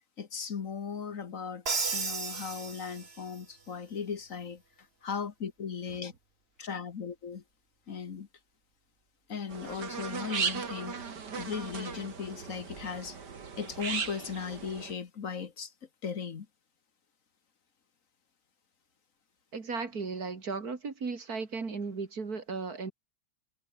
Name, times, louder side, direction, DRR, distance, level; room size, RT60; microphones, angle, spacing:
voice 1, 0.2-1.6 1.9-4.6 5.0-6.1 6.6-7.4 7.9-8.3 9.3-11.0 11.4-13.2 13.6-15.7 16.0-16.5, left 6 dB, 55° left, 1.7 m, -37 dB
Crash cymbal, 1.7-3.4, right 4 dB, 40° right, 2.1 m, -34 dB
sound 1, 9.5-14.9, right 5 dB, 90° right, 3.0 m, -37 dB
voice 2, 19.5-22.9, right 4 dB, 65° right, 3.1 m, -36 dB
omnidirectional pair, 1.7 m